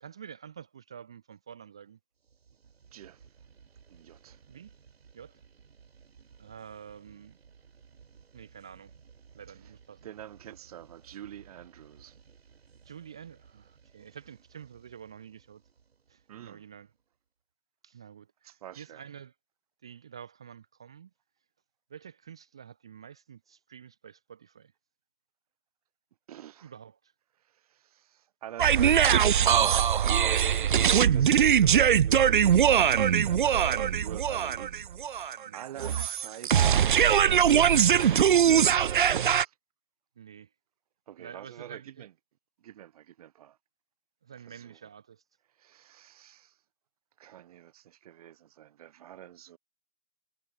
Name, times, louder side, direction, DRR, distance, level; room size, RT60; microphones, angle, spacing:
voice 1, 0.0-2.0 4.5-4.7 5.1-5.4 6.4-7.4 8.3-8.9 9.3-10.0 12.9-15.6 16.1-16.9 17.8-19.3 19.8-21.1 21.9-24.7 26.6-27.1 30.0-30.1 33.6-34.1 35.4-35.6 36.0-36.1 40.2-40.5 41.2-42.1 44.2-45.2, right 8 dB, 5° right, 0.5 m, -48 dB
sound 1, 2.2-17.0, right 6 dB, 70° right, 6.4 m, -58 dB
voice 2, 2.9-3.3 3.9-4.4 10.0-12.2 16.3-16.6 18.4-19.0 26.3-26.7 27.4-29.2 30.6-33.2 33.4-36.8 37.9-39.5 41.1-42.1 42.6-43.6 44.4-44.8 45.6-46.6 47.2-49.6, right 11 dB, 35° right, 6.1 m, -46 dB
sound 2, 28.6-39.4, right 9 dB, 50° right, 0.6 m, -22 dB
hypercardioid pair, 170°, 32 cm